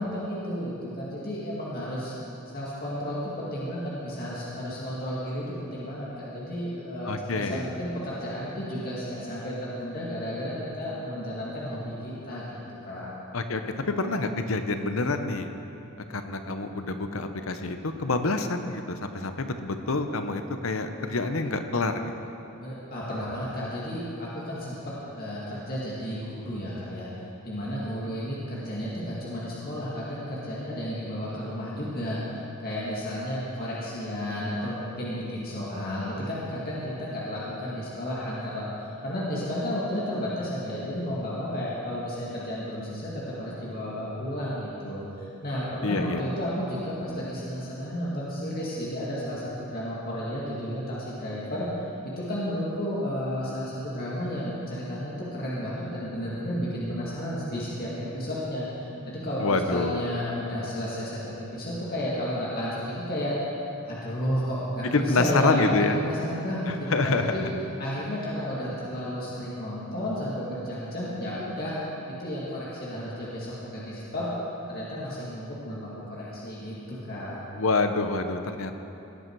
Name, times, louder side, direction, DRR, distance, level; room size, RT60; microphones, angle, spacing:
voice 1, 0.0-2.1 2.5-13.1 22.6-27.1 27.4-32.2 32.6-51.7 52.0-63.4 63.8-67.4 67.8-71.7 72.1-74.3 74.7-77.4, equal, 45° left, -7 dB, 2.1 m, -32 dB
voice 2, 7.0-7.7 13.3-13.6 13.9-15.5 16.1-22.0 45.8-46.2 59.4-60.0 64.9-66.0 66.7-67.4 77.5-78.7, left 3 dB, 70° left, 8 dB, 0.8 m, -27 dB
17.5 x 9.3 x 4.7 m, 3.0 s
head